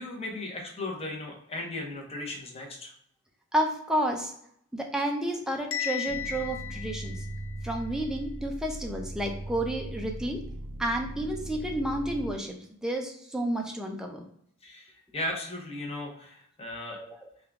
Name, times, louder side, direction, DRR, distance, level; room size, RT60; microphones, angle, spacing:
voice 1, 0.0-2.9 14.6-17.0, left 1 dB, 25° left, 0 dB, 0.8 m, -36 dB
voice 2, 3.5-4.3 4.7-7.2 7.6-10.4 10.8-14.2 16.9-17.3, right 1 dB, 5° right, 1 dB, 0.4 m, -31 dB
Bell, 5.7-7.8, left 11 dB, 60° left, 0.4 m, -36 dB
sound 1, 6.1-12.3, right 1 dB, 65° right, 0.4 m, -39 dB
3.6 x 2.3 x 3.5 m, 0.68 s
head